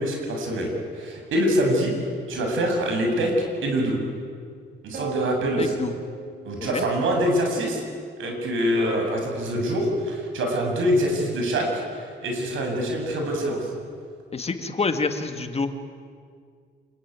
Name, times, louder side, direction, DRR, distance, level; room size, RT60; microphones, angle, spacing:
voice 1, 0.0-1.9 2.3-3.3 3.6-4.0 4.8-5.8 6.4-7.8 8.2-13.7, equal, 80° right, 2 dB, 7.7 m, -25 dB
sound 1, 4.9-7.5, right 5 dB, 50° right, 4.8 m, -37 dB
voice 2, 5.6-5.9 6.7-6.8 14.3-15.7, left 4 dB, 30° left, 7 dB, 2.1 m, -27 dB
26.0 x 22.5 x 9.7 m, 2.1 s
cardioid pair, 90°, 20 cm